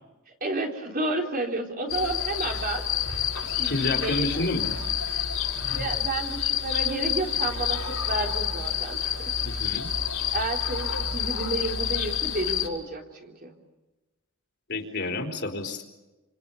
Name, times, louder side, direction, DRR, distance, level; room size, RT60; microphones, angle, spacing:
voice 1, 0.4-2.8 3.5-4.4 5.1-5.3 5.7-9.0 9.5-9.6 10.3-13.5, right 2 dB, 45° right, 2 dB, 3.7 m, -31 dB
sound 1, 1.9-12.7, left 8 dB, 85° left, 4.8 m, -28 dB
voice 2, 3.6-4.8 9.4-9.9 14.7-15.8, left 2 dB, 55° left, 3 dB, 4.0 m, -29 dB
29.5 x 26.5 x 7.0 m, 1.1 s
head